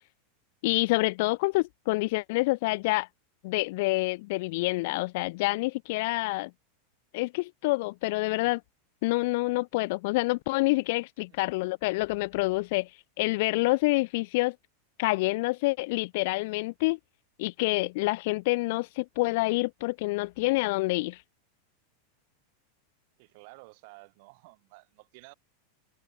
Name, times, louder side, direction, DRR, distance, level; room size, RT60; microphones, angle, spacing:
voice 1, 0.6-3.1 3.4-6.5 7.1-8.6 9.0-14.6 15.0-17.0 17.4-21.2, left 23 dB, 55° left, 0.3 m, -27 dB
voice 2, 23.2-25.3, right 28 dB, 55° right, 2.6 m, -52 dB
figure-of-eight pair, 90°, 0 cm